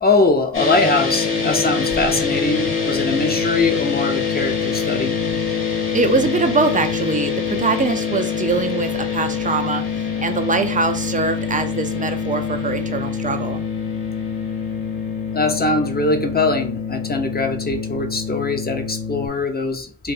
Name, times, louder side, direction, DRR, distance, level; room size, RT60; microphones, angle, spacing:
voice 1, 0.0-5.1 15.3-20.1, left 3 dB, 20° left, 0.8 m, -21 dB
sound 1, 0.5-19.3, left 6 dB, 55° left, 1.2 m, -24 dB
voice 2, 5.9-9.8 10.2-13.6, right 4 dB, 20° right, 0.6 m, -22 dB
2.5 x 2.4 x 4.1 m
supercardioid pair, 45°, 43 cm